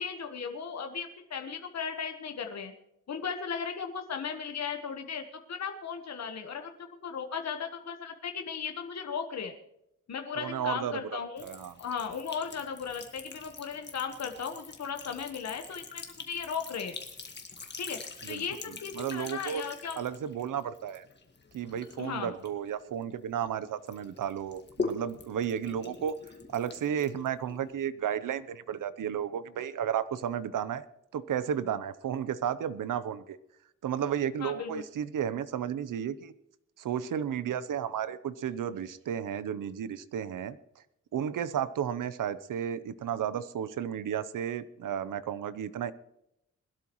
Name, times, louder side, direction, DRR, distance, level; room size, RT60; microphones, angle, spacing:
voice 1, 0.0-2.7 3.1-9.5 10.1-17.0 17.8-18.0 18.3-20.0 22.0-22.3 34.4-34.8, left 6 dB, 60° left, 5 dB, 1.2 m, -36 dB
voice 2, 10.4-11.8 18.2-19.6 20.0-21.0 21.5-26.2 26.5-30.8 31.1-33.4 33.8-36.3 36.8-40.6 41.1-45.9, right 9 dB, 85° right, 15 dB, 0.8 m, -33 dB
Sink (filling or washing) / Trickle dribble, 11.4-23.5 23.9-27.7, left 4 dB, 35° left, 1.8 m, -43 dB
21.5 x 12.5 x 3.1 m, 0.81 s
wide cardioid pair, 135°, 31 cm